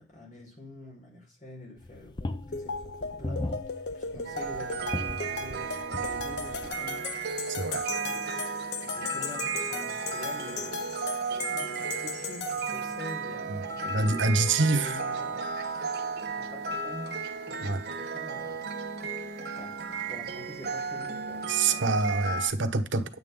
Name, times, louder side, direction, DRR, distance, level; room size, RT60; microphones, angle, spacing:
voice 1, 0.0-3.5 3.9-7.2 7.9-8.4 8.8-10.9 11.3-14.3 14.6-15.9 16.4-18.6 19.5-22.2, left 1 dB, 40° left, 4.6 m, -46 dB
sound 1, 1.8-6.8, left 2 dB, 25° left, 0.4 m, -38 dB
sound 2, 2.5-13.1, left 5 dB, 60° left, 0.7 m, -38 dB
sound 3, 4.2-22.5, right 5 dB, 55° right, 1.2 m, -34 dB
voice 2, 7.5-7.8 13.5-13.6 13.9-15.0 17.6-17.8 21.5-23.0, right 3 dB, 90° right, 1.1 m, -26 dB
9.7 x 8.8 x 3.7 m
head